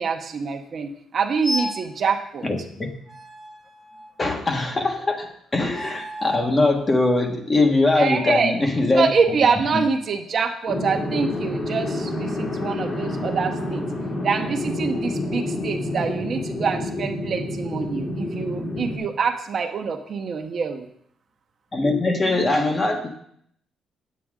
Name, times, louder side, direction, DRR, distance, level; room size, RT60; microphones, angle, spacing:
voice 1, 0.0-2.5 7.9-8.5 8.9-13.8 14.2-20.9, right 5 dB, 55° right, 5 dB, 0.9 m, -25 dB
sound 1, 1.4-1.9 3.1-4.3 5.7-6.5, equal, 5° right, 1.2 m, -32 dB
voice 2, 2.4-2.9 4.2-9.1 9.7-9.8 21.7-23.1, left 2 dB, 30° left, 3 dB, 1.4 m, -21 dB
sound 2, 10.7-19.0, left 1 dB, 45° left, 2.7 m, -28 dB
8.5 x 8.5 x 3.7 m, 0.68 s
cardioid pair, 90°, 0 cm